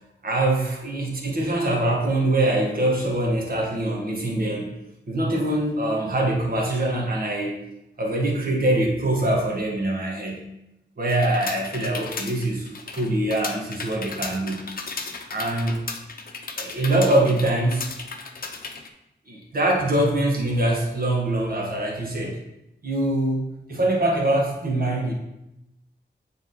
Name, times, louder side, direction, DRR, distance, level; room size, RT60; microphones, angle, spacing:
voice 1, 0.2-4.7 5.1-7.5 8.0-10.4 11.0-14.7 15.3-15.8 16.6-17.9 19.3-22.4 22.8-25.1, right 1 dB, 50° right, -2 dB, 1.7 m, -23 dB
sound 1, 11.1-18.9, left 4 dB, 50° left, 0.7 m, -35 dB
9.0 x 3.9 x 3.9 m, 0.89 s
wide cardioid pair, 120°, 19 cm